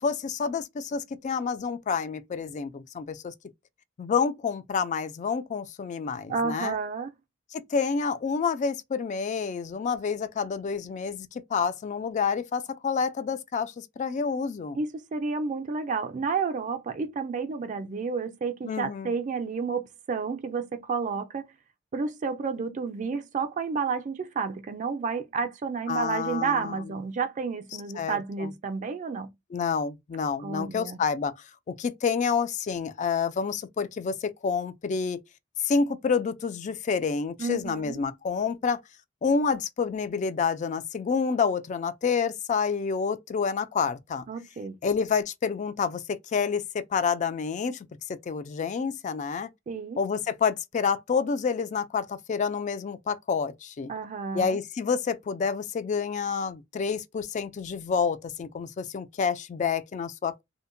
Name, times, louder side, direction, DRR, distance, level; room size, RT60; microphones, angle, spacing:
voice 1, 0.0-3.3 4.0-6.8 7.5-14.8 18.6-19.1 25.9-26.9 28.0-28.5 29.5-31.3 31.7-35.2 35.6-38.8 39.2-44.3 44.8-49.5 50.0-53.9 54.3-60.4, left 5 dB, 40° left, 0.3 m, -28 dB
voice 2, 6.3-7.1 14.8-21.5 21.9-29.3 30.4-31.0 37.4-38.0 44.3-44.8 49.7-50.0 53.9-54.6, right 5 dB, 40° right, 0.4 m, -31 dB
2.7 x 2.1 x 2.5 m
head